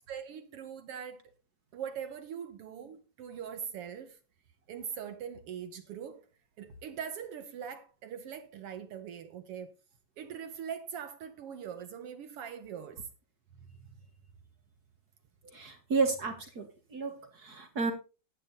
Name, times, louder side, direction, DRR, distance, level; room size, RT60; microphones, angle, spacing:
voice 1, 0.1-1.3 1.7-4.2 4.7-6.2 6.6-9.7 10.2-13.1, right 8 dB, 70° right, 1.5 m, -42 dB
voice 2, 15.5-17.9, right 4 dB, 55° right, 1.1 m, -32 dB
11.5 x 8.9 x 3.9 m
omnidirectional pair, 3.4 m